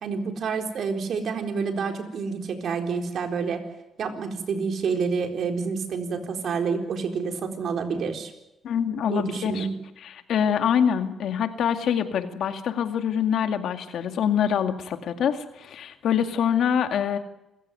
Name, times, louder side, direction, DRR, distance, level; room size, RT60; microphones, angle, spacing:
voice 1, 0.0-3.6 4.0-8.3 9.1-9.7, right 5 dB, 60° right, 4 dB, 3.9 m, -28 dB
voice 2, 8.6-9.7 10.0-17.2, left 8 dB, 70° left, 7 dB, 2.2 m, -25 dB
28.0 x 15.5 x 9.7 m, 0.94 s
cardioid pair, 90°, 0 cm